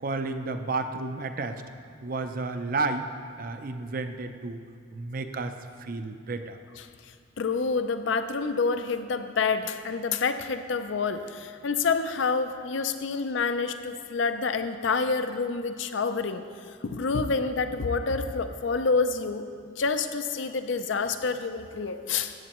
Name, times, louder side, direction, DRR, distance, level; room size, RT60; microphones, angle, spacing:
voice 1, 0.0-1.6 2.0-3.1 3.4-4.6 4.9-5.5 5.8-6.6, right 3 dB, 45° right, 8 dB, 0.5 m, -31 dB
voice 2, 7.4-16.4 16.8-19.5 19.8-22.3, left 4 dB, 70° left, 9 dB, 0.5 m, -28 dB
14.0 x 8.5 x 3.0 m, 2.4 s
head